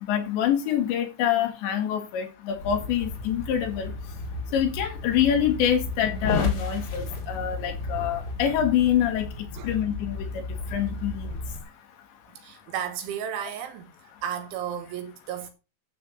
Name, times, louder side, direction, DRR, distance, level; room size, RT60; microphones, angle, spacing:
voice 1, 0.1-3.9 4.5-9.3 9.6-10.4 10.7-11.4, left 9 dB, 70° left, 3.9 m, -25 dB
sound 1, 2.6-11.6, left 3 dB, 40° left, 3.3 m, -33 dB
voice 2, 12.4-13.9 14.2-15.5, right 9 dB, 75° right, 4.1 m, -33 dB
12.5 x 4.3 x 7.9 m
omnidirectional pair, 5.6 m